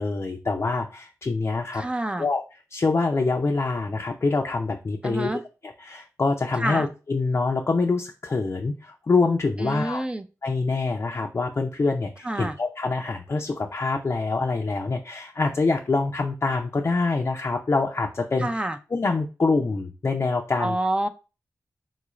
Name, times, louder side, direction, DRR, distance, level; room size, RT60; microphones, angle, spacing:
voice 1, 0.0-1.8 2.2-2.4 2.7-5.3 5.6-10.0 10.4-18.5 18.9-20.8, left 3 dB, 45° left, 2 dB, 0.4 m, -25 dB
voice 2, 1.7-2.3 5.0-5.4 6.6-6.9 9.6-10.2 12.2-12.6 18.4-18.8 20.6-21.1, right 1 dB, 15° right, 8 dB, 0.4 m, -27 dB
3.8 x 2.4 x 3.0 m, 0.31 s
cardioid pair, 50°, 6 cm